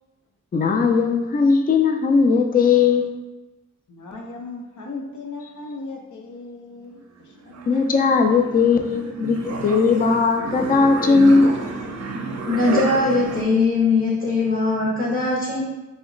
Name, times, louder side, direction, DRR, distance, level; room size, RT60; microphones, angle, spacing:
voice 1, 0.5-3.0 7.7-11.6, left 4 dB, 30° left, 4 dB, 0.4 m, -18 dB
voice 2, 3.9-7.6, left 3 dB, 80° left, 1 dB, 0.6 m, -37 dB
sound 1, 7.0-13.4, right 3 dB, 60° right, 0.5 m, -30 dB
voice 3, 12.5-15.6, left 3 dB, 50° left, -5 dB, 0.8 m, -20 dB
2.9 x 2.1 x 3.7 m, 1.1 s
cardioid pair, 70°, 29 cm